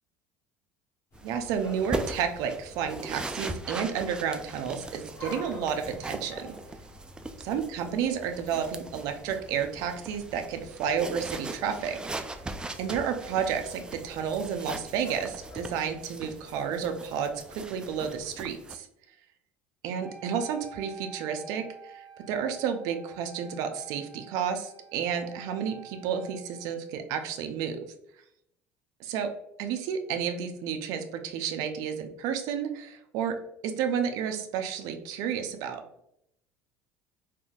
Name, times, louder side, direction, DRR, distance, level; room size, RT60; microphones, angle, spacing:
sound 1, 1.1-15.7, left 1 dB, 45° left, 1.2 m, -49 dB
sound 2, 1.1-18.8, right 2 dB, 15° right, 0.3 m, -40 dB
voice 1, 1.2-6.5 7.4-12.3 12.8-18.9 19.8-27.8 29.0-29.3 29.6-33.4 33.6-35.8, right 7 dB, 70° right, 7 dB, 0.5 m, -31 dB
Wind instrument woodwind instrument, 20.0-26.9, right 6 dB, 15° left, 1.4 m, -48 dB
3.6 x 2.5 x 2.3 m, 0.77 s
supercardioid pair, 95°, 6 cm